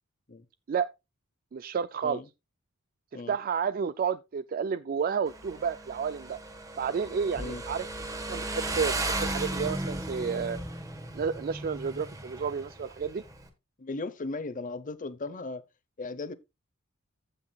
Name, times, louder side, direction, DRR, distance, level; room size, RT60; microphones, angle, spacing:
voice 1, 1.5-2.2 3.3-6.4 6.8-7.9 8.1-10.6 11.1-13.2, right 6 dB, 45° right, 0.3 m, -31 dB
Motorcycle, 5.3-13.5, right 2 dB, 15° right, 1.2 m, -36 dB
voice 2, 13.8-15.6 16.0-16.3, left 3 dB, 40° left, 0.7 m, -36 dB
15.0 x 5.8 x 2.3 m
head